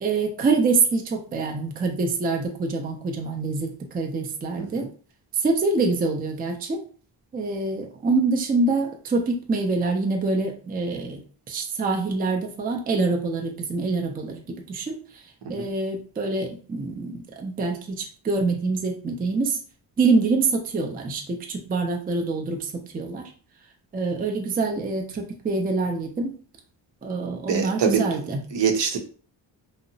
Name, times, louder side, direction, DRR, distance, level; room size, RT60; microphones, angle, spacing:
voice 1, 0.0-4.9 5.3-6.8 7.3-15.0 15.5-19.6 20.0-23.3 23.9-26.3 27.0-28.4, right 3 dB, 20° right, 2 dB, 0.4 m, -25 dB
voice 2, 4.6-4.9 15.6-15.7 27.4-28.0 28.5-29.0, right 6 dB, 65° right, 4 dB, 0.7 m, -24 dB
2.7 x 2.0 x 2.6 m, 0.42 s
cardioid pair, 85°, 45 cm